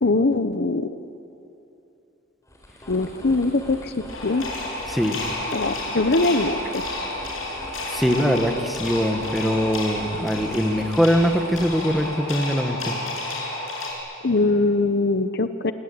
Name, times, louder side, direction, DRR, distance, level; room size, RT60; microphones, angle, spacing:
voice 1, 0.0-0.9 2.9-4.5 5.5-6.9 14.2-15.7, left 2 dB, 55° left, 10 dB, 0.9 m, -22 dB
sound 1, 2.4-12.4, equal, 15° left, 5.1 m, -41 dB
sound 2, 4.1-13.9, left 2 dB, 90° left, 7.0 m, -31 dB
voice 2, 4.9-5.2 7.9-12.9, equal, ahead, 4 dB, 1.8 m, -22 dB
27.5 x 23.0 x 8.8 m, 2.7 s
head